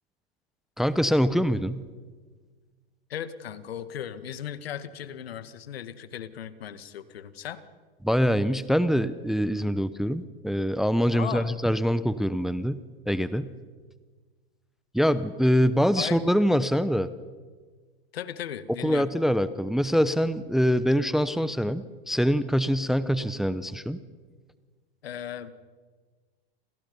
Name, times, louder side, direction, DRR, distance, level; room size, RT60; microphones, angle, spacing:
voice 1, 0.8-1.8 8.0-13.5 14.9-17.1 18.8-24.0, equal, ahead, 14 dB, 0.9 m, -24 dB
voice 2, 3.1-7.6 11.1-11.5 16.0-16.2 18.1-19.1 25.0-25.5, left 9 dB, 70° left, 12 dB, 2.1 m, -36 dB
30.0 x 28.0 x 5.5 m, 1.4 s
hypercardioid pair, 105°, 31 cm